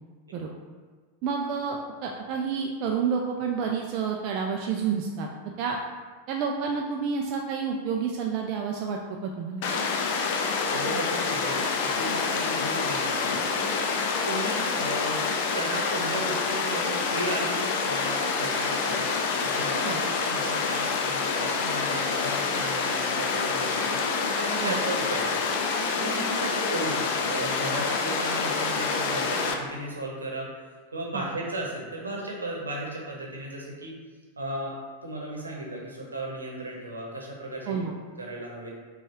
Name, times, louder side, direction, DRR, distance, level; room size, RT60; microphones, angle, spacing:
voice 1, 1.2-5.3 5.6-5.8 6.3-9.8 19.8-20.0 24.6-24.8 31.1-31.3 37.7-37.9, right 6 dB, 40° right, 1 dB, 0.3 m, -29 dB
Water, 9.6-29.5, left 4 dB, 50° left, 0.4 m, -27 dB
voice 2, 10.7-13.8 14.2-15.2 15.5-19.1 19.4-24.0 24.3-30.5 30.9-33.9 34.4-34.8 35.0-37.8 38.2-38.7, right 1 dB, 75° right, -2 dB, 0.9 m, -35 dB
5.3 x 2.3 x 3.0 m, 1.5 s
figure-of-eight pair, 90°, 0 cm